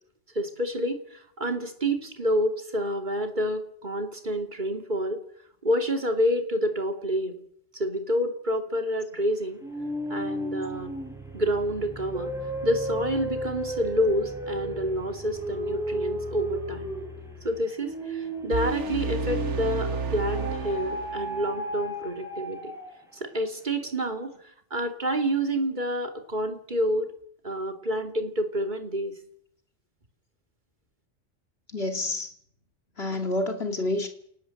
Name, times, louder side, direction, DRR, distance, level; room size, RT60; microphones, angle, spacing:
voice 1, 0.3-5.2 5.6-7.4 7.7-9.6 10.1-10.9 11.3-12.3 12.6-16.9 17.4-22.7 23.1-24.4 24.7-27.1 27.4-29.2, equal, 40° right, 5 dB, 2.9 m, -28 dB
sound 1, 9.6-19.8 20.3-23.1, equal, ahead, 6.1 m, -34 dB
sound 2, 18.5-21.6, right 4 dB, 70° right, 1.7 m, -31 dB
voice 2, 31.7-32.3 33.0-34.1, left 2 dB, 55° left, 5 dB, 3.1 m, -28 dB
29.5 x 18.5 x 7.9 m, 0.72 s
omnidirectional pair, 1.2 m